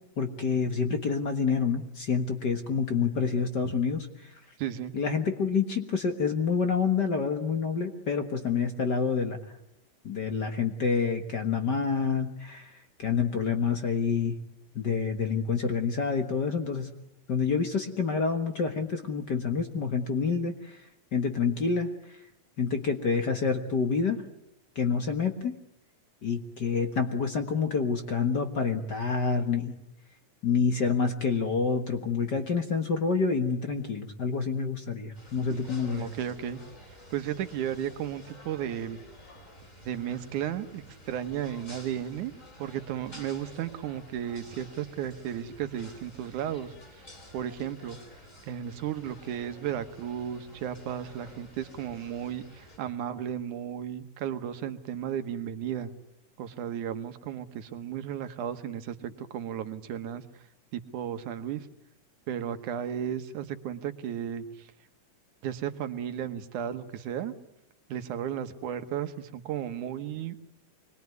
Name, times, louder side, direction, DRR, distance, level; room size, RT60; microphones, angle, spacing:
voice 1, 0.2-4.3 4.9-9.4 10.0-14.3 14.7-16.9 17.3-20.8 21.1-22.2 22.6-24.2 24.7-25.6 26.2-29.7 30.4-36.1, left 5 dB, 45° left, 6 dB, 1.4 m, -28 dB
voice 2, 4.6-4.9 35.5-36.6 37.1-39.0 39.9-42.3 42.6-47.0 47.3-48.0 48.4-55.9 56.4-60.4 60.7-61.7 62.3-64.7 65.4-67.3 67.9-70.4, right 10 dB, 70° right, 9 dB, 2.5 m, -34 dB
sound 1, 35.1-52.8, equal, 20° left, 4.7 m, -51 dB
25.0 x 21.5 x 9.5 m, 0.81 s
omnidirectional pair, 3.8 m